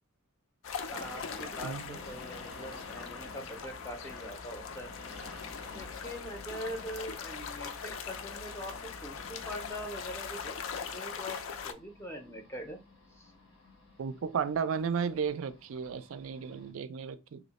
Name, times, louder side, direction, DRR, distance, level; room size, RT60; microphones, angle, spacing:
sound 1, 0.6-11.7, left 6 dB, 65° left, 0.4 m, -41 dB
sound 2, 0.9-16.7, left 2 dB, 85° left, 1.3 m, -52 dB
voice 1, 0.9-4.9 5.7-8.8 9.0-10.6 10.9-12.8 13.1-13.3, equal, 10° left, 0.5 m, -43 dB
voice 2, 1.6-2.0 14.0-17.4, right 6 dB, 70° right, 0.4 m, -34 dB
2.8 x 2.1 x 4.0 m
head